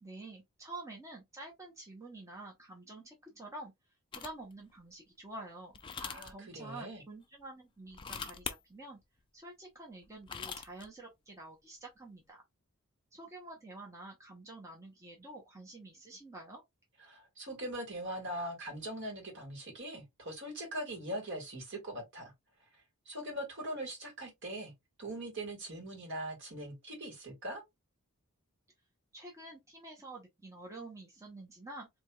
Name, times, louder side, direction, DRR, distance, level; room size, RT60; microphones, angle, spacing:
voice 1, 0.0-3.7 4.1-5.8 6.2-9.0 9.3-12.4 13.1-16.6 29.1-31.9, right 2 dB, 15° right, 0.7 m, -48 dB
sound 1, 4.1-4.5 5.7-6.3 7.9-8.6 10.0-10.9, left 6 dB, 20° left, 0.3 m, -41 dB
voice 2, 6.0-7.0 17.0-22.3 23.0-24.7 25.0-27.6, right 1 dB, 55° right, 1.7 m, -41 dB
4.5 x 2.7 x 2.2 m
head